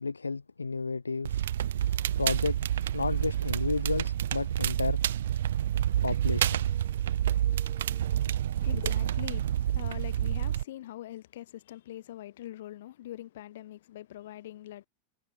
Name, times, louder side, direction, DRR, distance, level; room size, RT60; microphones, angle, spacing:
voice 1, 0.0-1.4 2.2-2.6 2.9-5.0 6.0-6.6, left 4 dB, 80° left, 1.0 m, -32 dB
Crackle, 1.2-10.6, right 11 dB, 60° right, 0.4 m, -28 dB
sound 1, 5.3-8.9, right 5 dB, 15° right, 5.2 m, -60 dB
voice 2, 8.3-14.9, left 13 dB, 55° left, 5.4 m, -43 dB
figure-of-eight pair, 90°, 0 cm